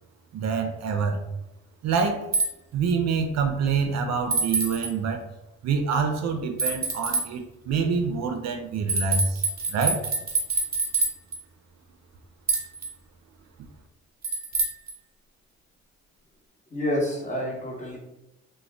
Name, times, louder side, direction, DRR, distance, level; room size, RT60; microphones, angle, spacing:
voice 1, 0.3-1.2 1.8-2.3 2.7-5.2 5.6-10.0, right 5 dB, 60° right, 5 dB, 0.4 m, -26 dB
sound 1, 2.3-2.5 4.3-4.9 6.6-7.2 8.9-11.4 12.5-12.9 14.2-14.9, right 3 dB, 30° right, 1.0 m, -25 dB
voice 2, 16.7-18.0, left 1 dB, 25° left, -2 dB, 0.9 m, -28 dB
2.5 x 2.1 x 3.2 m, 0.91 s
cardioid pair, 90°, 30 cm